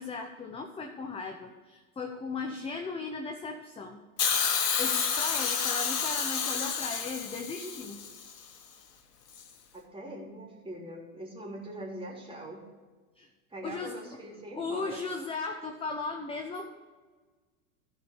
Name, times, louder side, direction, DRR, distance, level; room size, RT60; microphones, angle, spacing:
voice 1, 0.0-4.0 4.6-8.0 13.2-13.3 13.6-14.2 14.5-16.7, left 4 dB, 10° left, 4 dB, 0.8 m, -37 dB
Hiss, 4.2-8.3 9.3-9.4, left 6 dB, 85° left, 1.5 m, -29 dB
voice 2, 9.7-12.7 13.5-15.0, right 1 dB, 10° right, -2 dB, 3.3 m, -42 dB
14.5 x 5.0 x 6.6 m, 1.4 s
hypercardioid pair, 105°, 46 cm